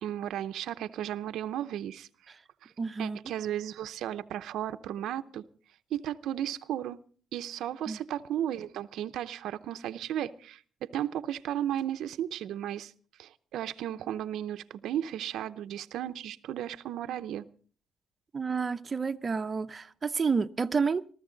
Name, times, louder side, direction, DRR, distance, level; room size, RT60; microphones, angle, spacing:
voice 1, 0.0-2.3 2.6-2.7 3.0-5.4 5.9-7.0 7.3-12.9 13.2-17.5, right 11 dB, 80° right, 0.6 m, -35 dB
voice 2, 2.8-3.2 7.9-8.0 18.3-21.1, right 5 dB, 35° right, 0.7 m, -30 dB
21.5 x 13.5 x 3.9 m
cardioid pair, 90°, 0 cm